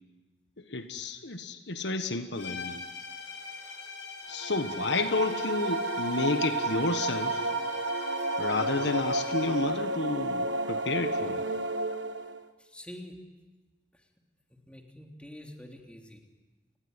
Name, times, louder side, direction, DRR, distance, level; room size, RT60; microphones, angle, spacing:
voice 1, 0.7-2.8 4.3-7.5 8.4-11.4, left 3 dB, 70° left, 9 dB, 1.5 m, -31 dB
sound 1, 2.3-9.8, left 5 dB, 90° left, 6.6 m, -43 dB
sound 2, 4.3-12.5, right 2 dB, 80° right, 1.5 m, -31 dB
voice 2, 12.6-13.2 13.9-14.0 14.7-16.2, left 1 dB, 5° left, 2 dB, 3.4 m, -46 dB
30.0 x 20.5 x 9.8 m, 1.3 s
head